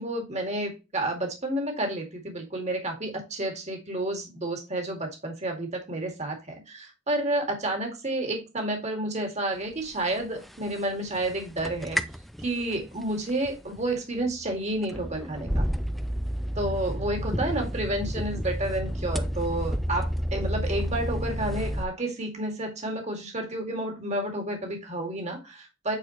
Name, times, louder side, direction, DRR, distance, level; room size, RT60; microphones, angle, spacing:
voice 1, 0.0-12.0 12.4-15.7 16.6-26.0, right 1 dB, 35° right, 2 dB, 2.1 m, -30 dB
sound 1, 10.1-10.7 11.1-21.9, equal, ahead, 0.4 m, -31 dB
8.4 x 4.4 x 3.0 m, 0.27 s
head